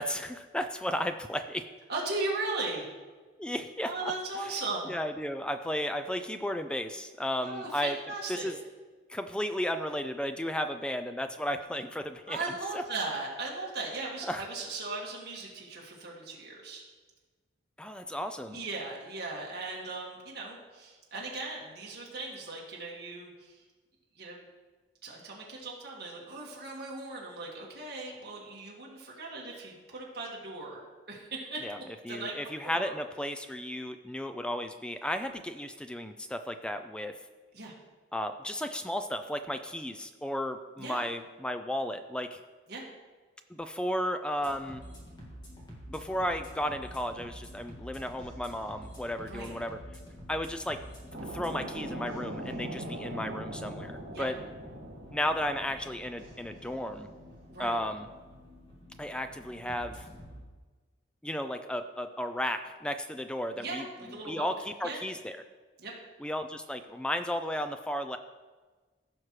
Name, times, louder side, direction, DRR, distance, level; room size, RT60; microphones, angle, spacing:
voice 1, 0.0-1.6 3.4-3.9 4.9-8.0 8.3-8.5 9.1-12.4 12.7-12.8 14.2-14.4 17.8-18.6 31.6-31.8 32.1-37.1 38.1-42.4 43.5-44.8 45.9-49.8 50.3-50.8 51.3-54.4 55.1-57.1 57.6-58.1 59.0-60.1 61.2-63.8 64.3-65.4 66.2-68.2, equal, 5° left, 8 dB, 0.3 m, -34 dB
voice 2, 1.9-2.8 3.8-4.9 7.4-8.5 12.3-16.8 18.5-23.6 24.2-24.4 25.0-32.4 32.6-32.9 37.5-37.8 40.8-41.0 42.7-42.9 49.2-49.5 54.1-54.3 57.5-57.8 63.6-64.5 64.8-65.0 65.8-66.0, right 3 dB, 55° right, -4 dB, 1.9 m, -38 dB
sound 1, 44.4-60.4, equal, 20° left, 1.9 m, -49 dB
sound 2, 51.1-57.5, right 1 dB, 85° right, 2.0 m, -41 dB
15.5 x 5.9 x 3.2 m, 1.3 s
head